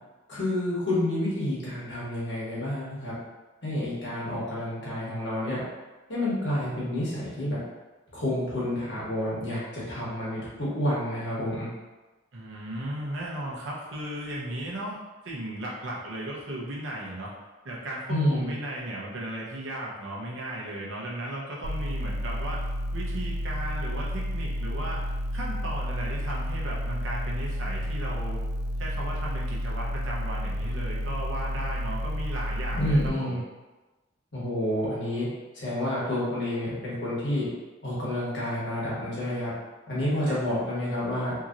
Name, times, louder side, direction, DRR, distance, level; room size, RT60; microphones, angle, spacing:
voice 1, 0.3-3.1 3.6-5.6 6.1-7.6 8.1-11.7 18.1-18.5 32.7-33.4 34.3-35.3 35.5-37.5 37.8-39.5 39.9-41.3, left 1 dB, 60° left, -8 dB, 1.2 m, -29 dB
voice 2, 12.3-17.3 17.6-22.6 22.9-28.4 28.8-33.4 40.3-40.4, right 1 dB, 75° right, -5 dB, 0.8 m, -36 dB
sound 1, 21.6-33.1, equal, 50° right, 0.3 m, -31 dB
2.9 x 2.7 x 2.5 m, 1.2 s
head